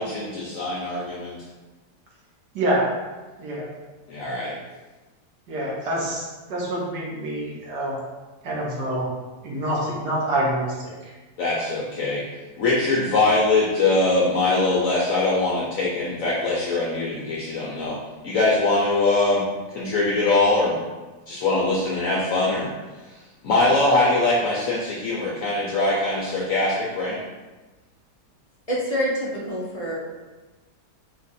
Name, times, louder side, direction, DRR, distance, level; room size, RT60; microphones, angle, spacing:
voice 1, 0.0-1.4 4.1-4.5 11.4-12.2 12.6-19.4 19.7-20.8 21.3-22.7 23.4-27.2, left 2 dB, 65° left, -4 dB, 1.0 m, -22 dB
voice 2, 5.5-8.0 8.4-9.1 9.4-10.7, right 1 dB, 85° right, -4 dB, 1.7 m, -26 dB
voice 3, 28.7-30.0, equal, 35° left, -6 dB, 0.6 m, -26 dB
4.5 x 2.5 x 4.1 m, 1.2 s
omnidirectional pair, 1.7 m